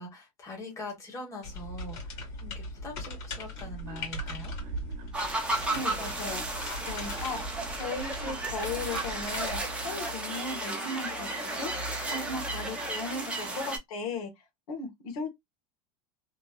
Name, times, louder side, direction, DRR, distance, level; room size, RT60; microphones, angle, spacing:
voice 1, 0.0-4.5, left 1 dB, 15° left, 1.1 m, -43 dB
sound 1, 1.4-9.6, left 2 dB, 50° left, 1.7 m, -40 dB
sound 2, 3.5-13.7, right 3 dB, 55° right, 1.0 m, -44 dB
sound 3, 5.1-13.8, right 2 dB, 5° right, 0.6 m, -34 dB
voice 2, 5.7-6.4 6.9-7.4 7.8-11.7 12.1-14.3 14.7-15.3, left 3 dB, 85° left, 1.2 m, -36 dB
3.0 x 2.1 x 2.3 m
supercardioid pair, 145°, 18 cm